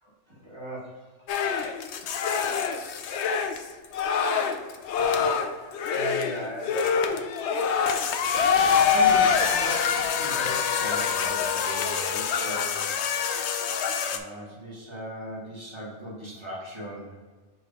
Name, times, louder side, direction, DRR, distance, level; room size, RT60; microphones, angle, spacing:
voice 1, 0.0-1.1 5.0-5.2 5.9-6.9 8.9-12.9 14.1-17.1, equal, 25° right, -5 dB, 1.7 m, -38 dB
sound 1, 1.3-14.2, left 6 dB, 70° left, 0.8 m, -25 dB
4.9 x 4.0 x 4.8 m, 1.4 s
omnidirectional pair, 1.3 m